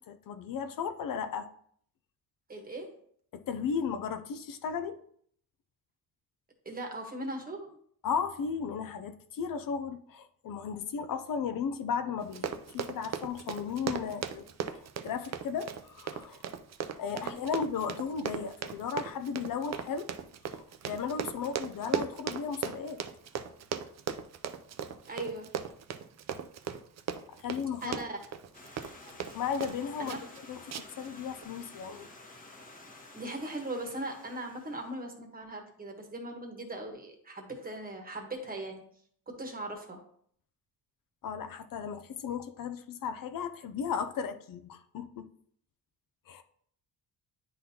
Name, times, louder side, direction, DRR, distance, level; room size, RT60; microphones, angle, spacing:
voice 1, 0.0-1.5 3.3-5.0 8.0-16.4 17.0-20.1 20.5-23.0 27.4-28.0 29.3-30.1 30.5-32.1 41.2-45.3 46.3-46.4, left 6 dB, 60° left, 8 dB, 0.5 m, -35 dB
voice 2, 2.5-2.9 6.6-7.8 17.2-17.4 25.1-25.5 27.8-28.2 30.0-30.2 33.1-38.8 39.4-40.0, right 1 dB, 25° right, 3 dB, 1.2 m, -39 dB
Run, 12.2-29.8 30.1-30.4 30.7-31.1 31.4-31.5, right 7 dB, 45° right, 0.5 m, -37 dB
Stream, 28.5-35.0, left 2 dB, 20° left, 1.2 m, -52 dB
10.0 x 3.9 x 2.8 m, 0.62 s
cardioid pair, 140°, 38 cm